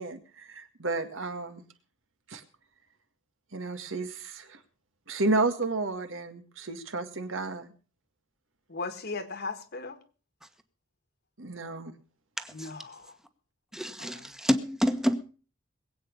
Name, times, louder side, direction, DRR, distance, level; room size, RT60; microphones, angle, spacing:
voice 1, 0.0-1.6 2.3-2.4 3.5-4.6 5.1-7.7 11.4-11.9, right 3 dB, 80° right, 2.0 m, -32 dB
voice 2, 8.7-10.0 12.5-13.2 14.0-14.3, left 3 dB, 55° left, 1.7 m, -38 dB
voice 3, 12.4-12.7 13.7-15.2, equal, 5° right, 1.3 m, -28 dB
21.0 x 8.6 x 5.3 m
head